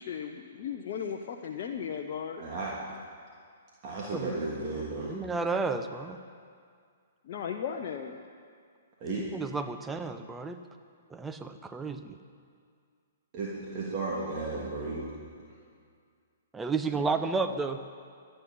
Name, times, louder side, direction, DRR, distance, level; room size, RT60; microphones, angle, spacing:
voice 1, 0.0-2.4 7.2-8.2, left 7 dB, 45° left, 2 dB, 0.9 m, -36 dB
voice 2, 2.4-2.8 3.8-5.2 9.0-9.2 13.3-15.1 16.9-17.0, right 3 dB, 35° right, -6 dB, 3.1 m, -34 dB
voice 3, 5.1-6.2 9.2-10.6 11.1-12.2 16.5-17.8, right 4 dB, 10° right, 8 dB, 0.9 m, -32 dB
25.5 x 10.0 x 5.7 m, 2.2 s
figure-of-eight pair, 115°, 0 cm